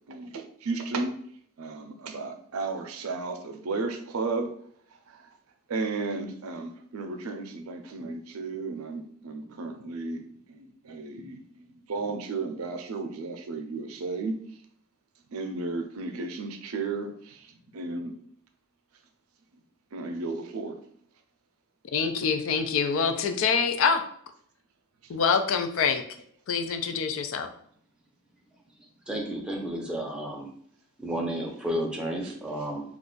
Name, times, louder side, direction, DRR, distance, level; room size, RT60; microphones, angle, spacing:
voice 1, 0.1-1.1 1.6-4.5 5.1-5.4 5.7-14.4 15.3-18.1 19.9-20.8 32.2-32.3, right 3 dB, 85° right, 5 dB, 0.5 m, -34 dB
voice 2, 21.9-24.0 25.1-26.0 26.5-27.5, left 6 dB, 65° left, 6 dB, 0.4 m, -25 dB
voice 3, 29.1-30.5 31.0-32.8, equal, 5° right, -1 dB, 0.6 m, -32 dB
2.4 x 2.3 x 3.8 m, 0.64 s
head